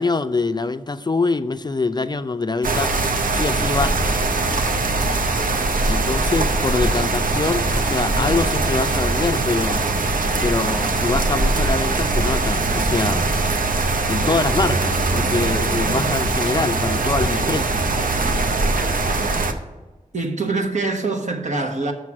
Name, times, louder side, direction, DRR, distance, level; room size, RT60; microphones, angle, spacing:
voice 1, 0.0-2.9 3.3-4.1 5.8-9.8 10.4-13.2 14.1-17.8, left 3 dB, 30° left, 10 dB, 0.4 m, -24 dB
sound 1, 2.6-19.5, right 3 dB, 80° right, 0.7 m, -21 dB
voice 2, 20.1-21.9, right 3 dB, 60° right, 3 dB, 1.1 m, -24 dB
6.6 x 6.1 x 6.0 m, 1.2 s
wide cardioid pair, 60°, 14 cm